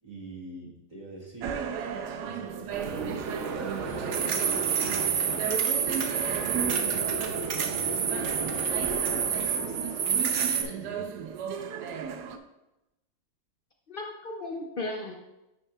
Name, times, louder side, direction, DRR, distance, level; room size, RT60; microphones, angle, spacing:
voice 1, 0.0-1.7 2.2-5.6 6.2-11.1, right 2 dB, 20° right, -5 dB, 2.0 m, -44 dB
sound 1, 1.4-12.4, right 7 dB, 80° right, 1.2 m, -36 dB
sound 2, 2.7-10.6, right 6 dB, 60° right, 0.8 m, -28 dB
voice 2, 13.9-15.2, left 2 dB, 85° left, 1 dB, 0.4 m, -36 dB
10.0 x 5.9 x 2.3 m, 0.93 s
omnidirectional pair, 1.8 m